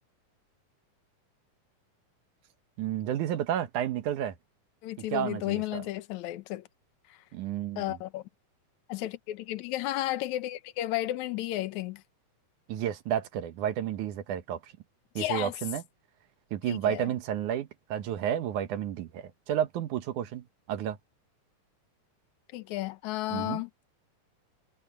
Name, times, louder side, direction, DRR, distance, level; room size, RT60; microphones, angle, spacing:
voice 1, 2.8-4.4 5.0-5.8 7.3-8.0 12.7-14.7 15.2-15.8 16.5-21.0 23.3-23.6, right 10 dB, 75° right, 2.5 m, -31 dB
voice 2, 4.8-6.6 7.1-7.2 7.8-8.2 8.9-12.0 15.2-15.5 16.7-17.1 22.5-23.7, left 15 dB, 70° left, 2.2 m, -33 dB
omnidirectional pair, 3.7 m